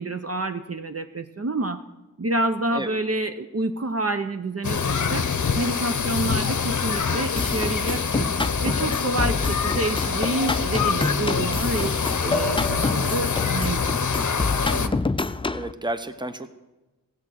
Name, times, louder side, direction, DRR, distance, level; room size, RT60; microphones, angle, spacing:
voice 1, 0.0-1.8 2.2-5.3 5.6-8.3 8.6-11.9 12.2-13.8, right 2 dB, 45° right, 7 dB, 0.7 m, -28 dB
sound 1, 4.6-14.9, left 6 dB, 60° left, 0.7 m, -25 dB
sound 2, 7.4-15.7, left 3 dB, 15° left, 0.4 m, -27 dB
voice 2, 14.7-16.5, right 1 dB, 15° right, 9 dB, 0.8 m, -33 dB
16.0 x 8.6 x 6.4 m, 1.1 s
wide cardioid pair, 55°, 33 cm